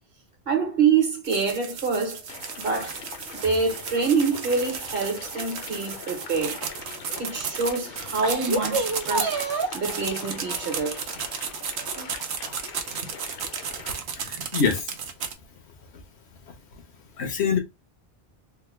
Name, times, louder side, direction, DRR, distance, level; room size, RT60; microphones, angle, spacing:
voice 1, 0.5-2.2 2.6-3.0 3.3-6.6 7.1-9.4 9.7-11.0 13.0-13.1, right 5 dB, 60° right, 1.2 m, -26 dB
sound 1, 1.2-15.3, right 7 dB, 90° right, 0.9 m, -34 dB
sound 2, 2.3-14.0, left 5 dB, 60° left, 0.7 m, -42 dB
sound 3, 3.3-5.1 5.5-6.9 7.5-7.6 8.0-9.9 10.5-11.2 11.7-12.5 12.9-13.0 14.1-14.2, right 2 dB, 35° right, 0.4 m, -32 dB
voice 2, 14.1-14.9 15.9-16.0 16.5-16.6 17.2-17.6, left 6 dB, 80° left, 1.1 m, -25 dB
3.4 x 2.2 x 3.2 m
omnidirectional pair, 1.1 m